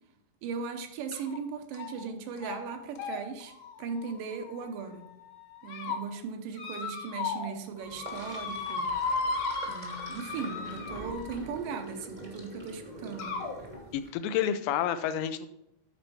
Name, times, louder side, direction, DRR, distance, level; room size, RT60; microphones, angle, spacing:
voice 1, 0.4-3.5 3.8-5.1 5.6-8.9 9.7-13.4, right 5 dB, 80° right, 6 dB, 2.5 m, -38 dB
sound 1, 1.1-1.4 1.7-2.1 2.4-2.6 3.0-4.9 5.4-6.0 6.6-7.5 7.8-11.4 12.4-12.5 13.2-13.5, left 4 dB, 60° left, 1.8 m, -35 dB
Sink (filling or washing), 7.8-14.1, right 1 dB, 30° right, 0.8 m, -44 dB
voice 2, 13.9-15.5, left 9 dB, 85° left, 11 dB, 2.2 m, -29 dB
10.5 x 4.4 x 5.4 m, 0.84 s
omnidirectional pair, 3.8 m